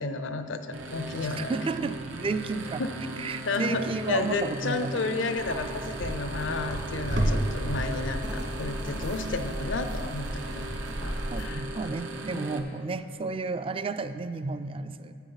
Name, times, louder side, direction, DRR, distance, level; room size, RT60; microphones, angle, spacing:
voice 1, 0.0-1.6 2.8-3.0 3.2-10.2 11.0-11.6 12.3-12.5, left 3 dB, 80° left, 9 dB, 0.7 m, -32 dB
sound 1, 0.7-12.6, right 2 dB, 90° right, 0.8 m, -39 dB
voice 2, 1.2-2.8 3.2-5.1 11.3-15.1, right 4 dB, 30° right, 12 dB, 0.3 m, -32 dB
sound 2, 5.4-11.5, equal, 65° right, 1.8 m, -32 dB
13.0 x 8.2 x 4.0 m, 2.9 s
head